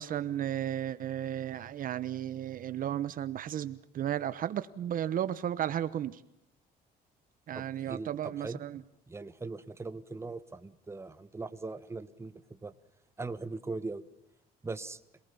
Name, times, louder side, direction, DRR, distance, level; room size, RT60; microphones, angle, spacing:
voice 1, 0.0-6.2 7.5-8.8, right 11 dB, 55° right, 14 dB, 1.0 m, -34 dB
voice 2, 7.5-8.6 9.1-12.7 13.2-14.0 14.6-15.0, right 3 dB, 15° right, 11 dB, 1.4 m, -40 dB
27.0 x 19.0 x 7.0 m, 0.83 s
cardioid pair, 110°, 17 cm